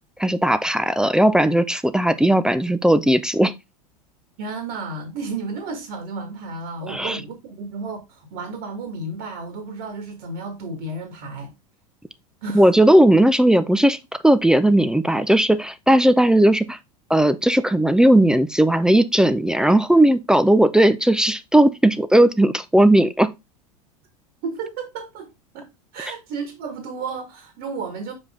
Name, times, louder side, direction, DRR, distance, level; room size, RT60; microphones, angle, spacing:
voice 1, 0.2-3.5 6.9-7.2 12.5-14.0 14.2-16.8 17.1-23.3, right 1 dB, 5° right, 0.4 m, -17 dB
voice 2, 4.4-11.5 12.4-12.7 24.4-25.3 25.5-25.7 25.9-28.1, right 3 dB, 55° right, 1.8 m, -32 dB
5.6 x 4.8 x 3.6 m
hypercardioid pair, 85°, 19 cm